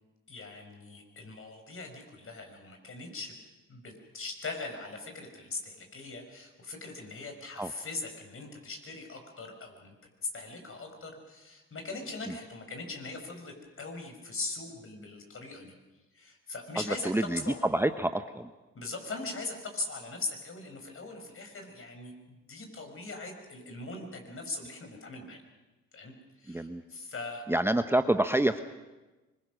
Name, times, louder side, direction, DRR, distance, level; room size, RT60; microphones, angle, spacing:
voice 1, 0.3-3.4 3.7-10.0 10.2-15.8 16.1-17.6 18.7-25.4 25.9-27.5, left 3 dB, 45° left, 4 dB, 5.9 m, -40 dB
voice 2, 16.8-18.5 26.5-26.8 27.5-28.6, right 1 dB, 10° right, 9 dB, 0.9 m, -28 dB
24.5 x 22.5 x 6.3 m, 1.1 s
supercardioid pair, 65°, 30 cm